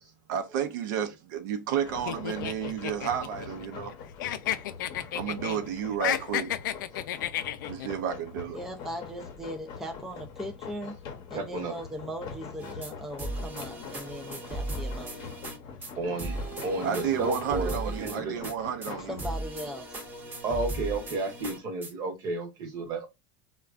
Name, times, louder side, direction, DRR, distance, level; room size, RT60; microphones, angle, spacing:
voice 1, 0.3-3.9 5.1-6.5 7.7-8.6 16.8-19.1, right 8 dB, 70° right, 0.6 m, -31 dB
sound 1, 1.8-19.2, left 6 dB, 45° left, 0.8 m, -44 dB
sound 2, 2.1-3.9 4.2-5.6 5.9-7.9, left 11 dB, 90° left, 0.4 m, -31 dB
voice 2, 8.5-10.9 11.3-15.2 19.1-20.0, equal, 5° right, 0.4 m, -39 dB
voice 3, 11.3-11.8 16.0-18.5 20.4-23.1, right 2 dB, 40° right, 1.0 m, -32 dB
sound 3, 12.6-12.9 13.2-15.6 15.8-15.9 16.2-18.6 18.8-18.9 19.2-21.9, right 2 dB, 20° right, 0.8 m, -36 dB
3.3 x 2.2 x 2.4 m
supercardioid pair, 135°, 10 cm